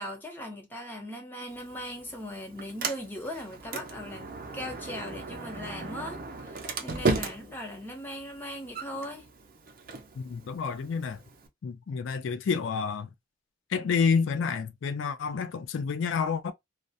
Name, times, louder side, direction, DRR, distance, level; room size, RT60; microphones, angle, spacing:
voice 1, 0.0-9.3, equal, 10° left, 0.7 m, -39 dB
Sliding door, 1.5-11.5, right 3 dB, 50° right, 0.5 m, -36 dB
voice 2, 10.2-11.2 11.6-13.1 13.7-16.5, left 5 dB, 85° left, 0.4 m, -29 dB
2.3 x 2.1 x 2.6 m
head